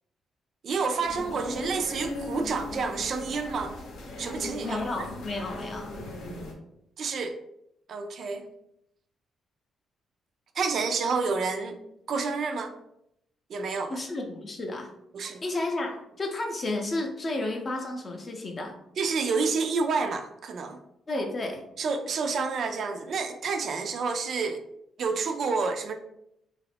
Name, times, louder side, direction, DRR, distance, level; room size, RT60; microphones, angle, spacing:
voice 1, 0.6-3.7 4.2-5.1 7.0-7.3 7.9-8.5 10.6-11.8 12.1-12.7 13.5-14.0 15.1-15.4 19.0-20.8 21.8-24.6 25.0-25.9, right 4 dB, 50° right, 6 dB, 0.3 m, -29 dB
sound 1, 1.0-6.5, left 2 dB, 70° left, 0.7 m, -38 dB
voice 2, 4.6-6.0 13.9-14.9 15.4-18.7 21.1-21.6, left 2 dB, 30° left, 3 dB, 0.5 m, -32 dB
2.8 x 2.4 x 3.3 m, 0.79 s
cardioid pair, 155°, 0 cm